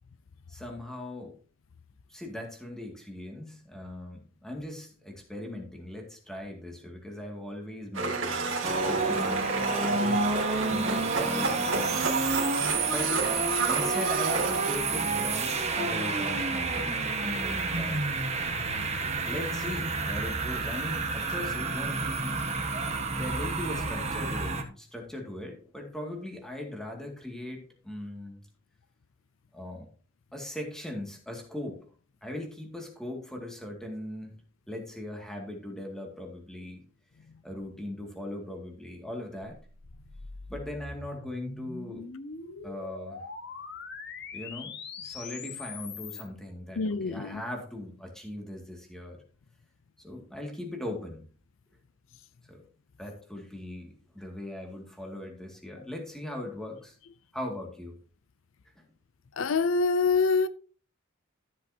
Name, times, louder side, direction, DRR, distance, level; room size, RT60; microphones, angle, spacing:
voice 1, 0.5-1.3 2.1-9.5 9.9-12.2 12.9-13.3 13.6-18.0 19.3-22.4 22.9-28.4 29.5-29.9 30.3-31.8 32.2-34.4 34.7-36.8 37.4-39.6 40.5-42.1 42.6-43.2 44.3-49.2 50.0-51.2 52.4-52.6 53.0-57.0 57.3-58.0, left 1 dB, 5° left, 2.2 m, -39 dB
Domestic sounds home sounds, 7.9-14.8, right 4 dB, 75° right, 2.2 m, -30 dB
sound 1, 8.6-24.6, right 3 dB, 35° right, 1.4 m, -30 dB
sound 2, 39.5-46.3, left 4 dB, 60° left, 1.4 m, -42 dB
voice 2, 46.8-47.4 59.4-60.5, left 4 dB, 75° left, 0.5 m, -25 dB
13.0 x 7.7 x 2.8 m
head